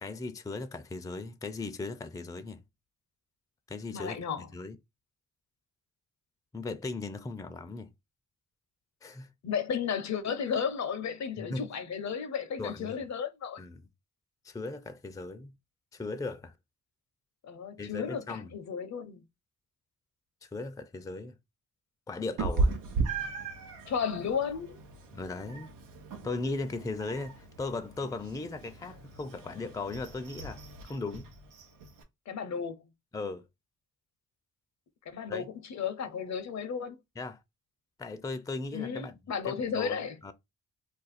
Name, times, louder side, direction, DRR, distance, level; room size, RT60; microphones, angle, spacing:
voice 1, 0.0-2.6 3.7-4.2 4.5-4.8 6.5-7.9 9.0-9.3 11.4-11.7 12.6-13.0 13.6-13.8 14.4-15.5 15.9-16.5 17.8-18.5 20.4-21.4 22.1-22.7 25.1-25.7 26.2-31.3 33.1-33.4 35.3-35.5 37.2-37.4 38.0-39.2 39.5-40.3, left 3 dB, 10° left, 0.4 m, -37 dB
voice 2, 3.9-4.5 9.4-13.6 17.4-19.2 23.9-24.8 32.3-32.8 35.1-37.0 38.7-40.1, left 7 dB, 60° left, 0.6 m, -33 dB
Meow, 22.4-32.0, right 3 dB, 90° right, 0.7 m, -36 dB
2.5 x 2.3 x 4.0 m
cardioid pair, 65°, 31 cm